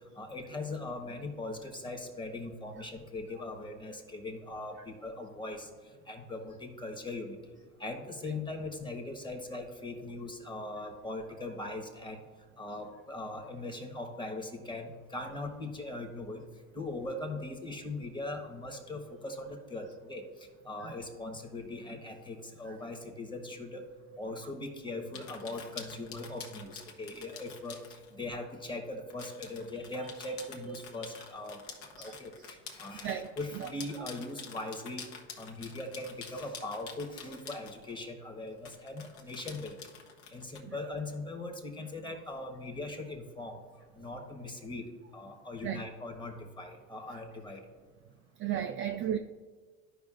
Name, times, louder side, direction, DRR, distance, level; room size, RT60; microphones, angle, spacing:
voice 1, 0.2-5.7 6.1-7.4 7.8-12.2 12.6-16.4 16.7-20.2 20.6-23.8 24.2-27.8 28.1-31.6 32.0-35.0 35.4-39.8 40.3-43.6 44.0-44.8 45.1-47.6, left 2 dB, 10° left, 4 dB, 1.2 m, -40 dB
sound 1, 25.1-28.1 29.1-38.1 38.6-40.6, left 6 dB, 75° left, 1.3 m, -48 dB
voice 2, 48.4-49.2, right 10 dB, 35° right, 4 dB, 0.4 m, -34 dB
12.5 x 5.0 x 2.5 m, 1.5 s
hypercardioid pair, 95°, 38 cm